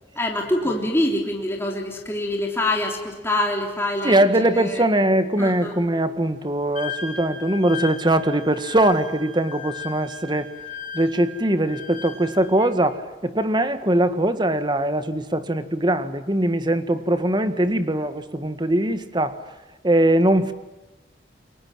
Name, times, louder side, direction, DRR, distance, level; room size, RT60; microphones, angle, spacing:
voice 1, 0.2-4.8 5.4-5.8, left 1 dB, 15° left, 1 dB, 3.5 m, -25 dB
voice 2, 4.0-10.5 10.9-19.4 19.8-20.5, right 1 dB, 25° right, 11 dB, 1.8 m, -21 dB
Wind instrument woodwind instrument, 6.7-12.7, left 5 dB, 45° left, 5.5 m, -36 dB
29.5 x 23.0 x 7.6 m, 1.1 s
head